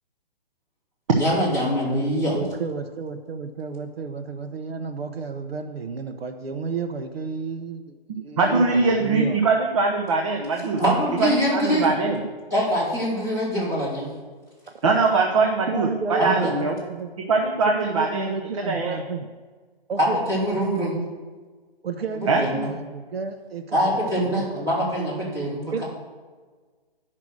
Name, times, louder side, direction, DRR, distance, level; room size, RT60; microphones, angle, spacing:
voice 1, 1.2-2.4 10.8-11.9 12.5-14.1 16.2-16.5 20.0-20.9 22.2-22.7 23.7-25.8, equal, 10° right, -7 dB, 2.9 m, -24 dB
voice 2, 2.3-9.4 14.8-14.9 15.7-17.1 17.9-19.3 19.9-20.2 20.5-20.9 21.8-24.7 25.7-25.8, right 5 dB, 70° right, 7 dB, 0.9 m, -32 dB
voice 3, 8.1-10.8 11.2-12.2 14.8-16.8 17.3-18.3 18.7-19.0 22.3-22.4, right 3 dB, 30° right, 1 dB, 0.8 m, -22 dB
10.5 x 5.9 x 6.3 m, 1.4 s
hypercardioid pair, 160°, 31 cm